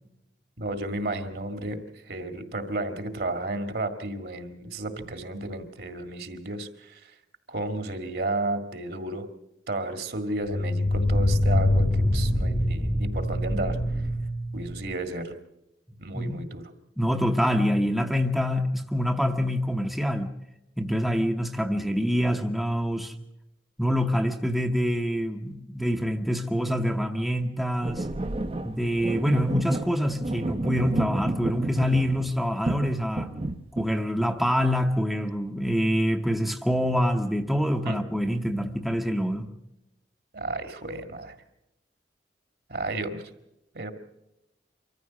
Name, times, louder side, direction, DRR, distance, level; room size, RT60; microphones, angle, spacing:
voice 1, 0.6-7.1 7.5-9.3 9.7-13.8 14.5-15.3 16.0-16.7 37.8-38.0 40.3-41.4 42.7-43.2 43.7-43.9, right 2 dB, 65° right, 7 dB, 1.8 m, -32 dB
sound 1, 5.0-5.1 10.4-14.9, left 1 dB, 20° left, 1.1 m, -25 dB
voice 2, 17.0-20.3 20.8-23.1 23.8-28.1 28.6-33.3 33.7-39.5, equal, ahead, 4 dB, 0.8 m, -26 dB
sound 2, 27.8-32.4 32.7-33.9, right 2 dB, 35° right, 0.7 m, -31 dB
24.5 x 14.5 x 7.3 m, 0.89 s
head